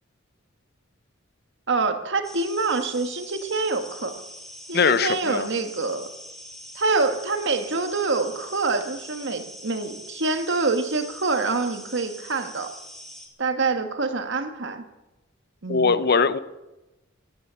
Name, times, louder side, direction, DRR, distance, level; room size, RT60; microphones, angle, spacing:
voice 1, 1.7-4.1 4.7-6.1 6.7-12.7 13.4-14.8 15.6-15.9, right 3 dB, 60° right, 7 dB, 1.6 m, -26 dB
sound 1, 2.2-13.3, equal, ahead, 2.9 m, -43 dB
voice 2, 4.7-5.5 15.7-16.4, left 5 dB, 50° left, 14 dB, 0.7 m, -21 dB
16.5 x 12.0 x 7.0 m, 1.0 s
head